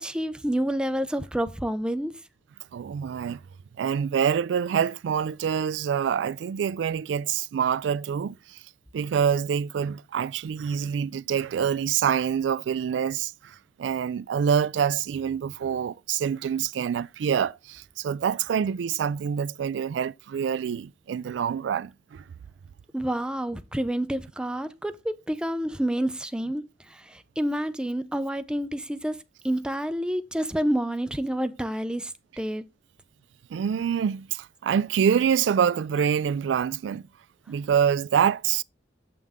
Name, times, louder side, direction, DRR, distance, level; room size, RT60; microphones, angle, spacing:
voice 1, 0.0-2.2 22.9-29.2 29.4-32.7, right 1 dB, 5° right, 0.5 m, -29 dB
voice 2, 2.7-3.4 3.8-8.6 8.9-22.2 33.5-37.1 37.5-38.6, right 7 dB, 90° right, 0.3 m, -26 dB
7.7 x 5.4 x 3.5 m
head